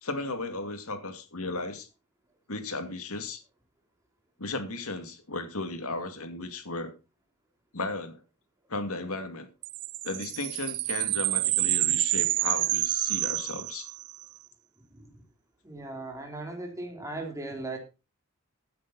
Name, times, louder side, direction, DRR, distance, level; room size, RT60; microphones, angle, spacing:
voice 1, 0.0-1.9 2.5-3.4 4.4-6.9 7.7-8.2 8.7-9.5 10.0-13.9, left 2 dB, 75° left, 2.5 m, -35 dB
sound 1, 9.6-14.2, right 18 dB, 90° right, 0.6 m, -28 dB
voice 2, 15.6-17.8, right 2 dB, 15° right, 3.6 m, -37 dB
15.5 x 9.5 x 4.1 m
head